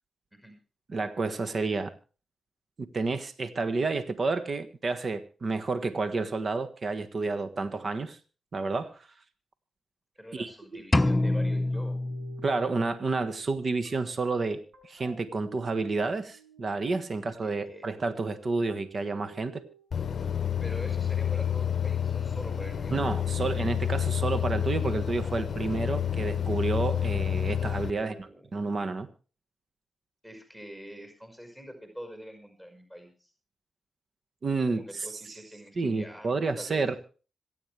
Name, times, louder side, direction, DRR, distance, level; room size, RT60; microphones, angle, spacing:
voice 1, 0.9-1.9 2.9-8.2 8.5-9.1 10.3-10.8 12.4-19.6 22.9-28.1 28.5-29.1 34.4-35.2 35.8-37.0, right 3 dB, 50° right, 9 dB, 1.5 m, -30 dB
voice 2, 10.2-12.0 17.4-17.9 20.6-23.0 27.9-28.5 30.2-33.3 34.7-37.0, equal, 15° right, 4 dB, 5.5 m, -45 dB
sound 1, 10.9-12.9, left 2 dB, 25° left, 0.8 m, -26 dB
sound 2, 11.7-27.1, right 4 dB, 75° right, 5.9 m, -55 dB
sound 3, 19.9-27.9, left 9 dB, 60° left, 0.7 m, -29 dB
26.5 x 9.4 x 3.4 m, 0.37 s
hypercardioid pair, 40°, 0 cm